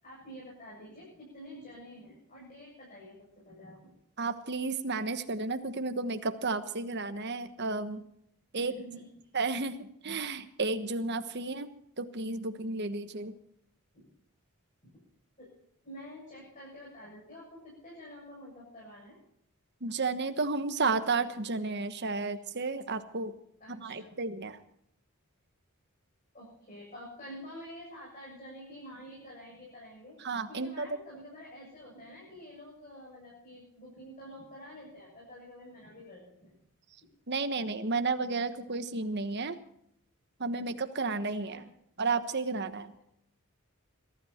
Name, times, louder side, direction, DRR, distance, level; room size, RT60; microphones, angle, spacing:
voice 1, 0.0-3.2 3.4-3.8 8.6-9.1 13.9-14.1 14.8-14.9 15.4-15.5 15.8-19.2 23.6-24.2 26.3-30.2 30.5-36.5, equal, 35° left, -6 dB, 7.7 m, -48 dB
voice 2, 4.2-8.0 8.5-8.7 9.3-11.7 12.0-13.3 19.8-23.3 23.7-24.6 30.2-30.9 37.3-39.6 40.4-41.7 42.0-42.9, right 3 dB, 50° right, 9 dB, 1.3 m, -32 dB
23.0 x 13.0 x 4.4 m, 0.72 s
head